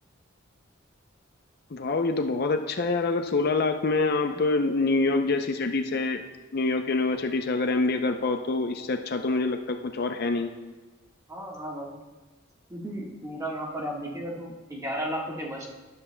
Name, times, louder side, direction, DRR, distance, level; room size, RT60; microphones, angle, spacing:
voice 1, 1.7-6.2 6.5-10.5, left 3 dB, 50° left, 6 dB, 0.5 m, -26 dB
voice 2, 11.3-11.9 12.7-15.7, equal, 15° right, -3 dB, 1.5 m, -34 dB
12.5 x 10.5 x 2.2 m, 1.2 s
head